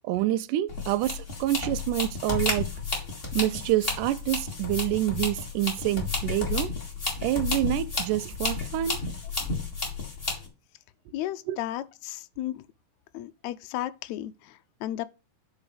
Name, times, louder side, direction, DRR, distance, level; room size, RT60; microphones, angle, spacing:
voice 1, 0.0-2.7 3.3-6.7 7.2-9.0 11.5-11.6, right 15 dB, 80° right, 2.0 m, -27 dB
sound 1, 0.7-10.5, left 4 dB, 20° left, 2.3 m, -32 dB
voice 2, 11.1-12.6 13.1-15.0, left 13 dB, 90° left, 1.6 m, -34 dB
12.0 x 4.1 x 5.0 m
omnidirectional pair, 3.9 m